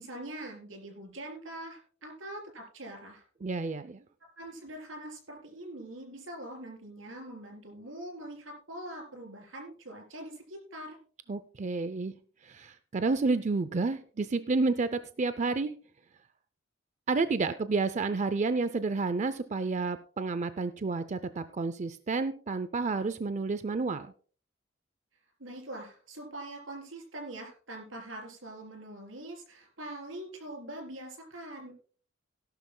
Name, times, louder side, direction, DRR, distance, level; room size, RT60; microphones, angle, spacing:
voice 1, 0.0-3.2 4.4-11.0 25.4-31.8, right 1 dB, 90° right, 3 dB, 4.0 m, -43 dB
voice 2, 3.4-4.0 11.3-12.2 12.4-15.7 17.1-24.1, right 3 dB, 35° right, 12 dB, 0.5 m, -30 dB
17.0 x 11.5 x 2.2 m, 0.42 s
head